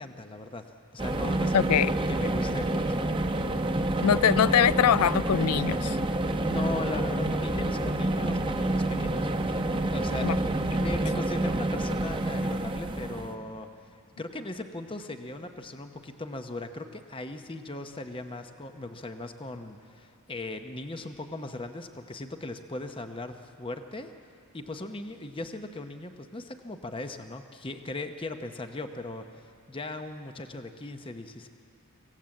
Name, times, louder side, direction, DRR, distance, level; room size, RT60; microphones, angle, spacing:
voice 1, 0.0-3.1 6.3-9.6 9.9-10.3 10.7-13.7 14.2-24.1 24.5-31.5, left 2 dB, 25° left, 7 dB, 0.8 m, -38 dB
sound 1, 1.0-13.3, right 1 dB, 20° right, 1.0 m, -28 dB
voice 2, 1.5-1.9 4.0-6.0 10.2-10.4, left 9 dB, 85° left, 19 dB, 0.4 m, -23 dB
25.5 x 16.5 x 7.7 m, 2.7 s
head